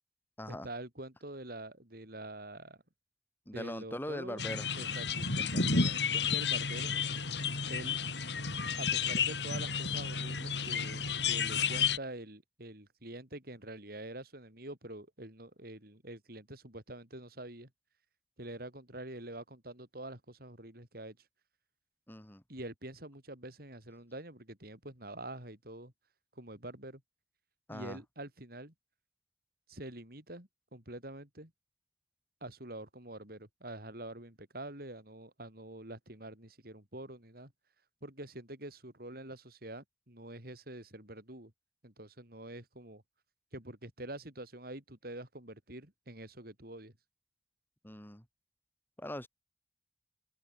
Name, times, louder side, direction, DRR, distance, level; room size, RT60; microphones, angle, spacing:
voice 1, 0.5-2.8 3.5-4.4 4.8-6.9 7.7-8.0 8.8-17.7 18.4-21.2 22.5-25.9 26.4-27.0 27.7-28.7 29.7-31.5 32.4-37.5 38.0-41.5 41.8-43.0 43.5-46.9, right 1 dB, 55° right, 6.1 m, -46 dB
voice 2, 3.5-4.7 22.1-22.4 27.7-28.0 47.8-48.2 49.0-49.3, left 1 dB, 10° left, 3.7 m, -41 dB
sound 1, 4.4-12.0, left 5 dB, 75° left, 4.7 m, -32 dB
open air
head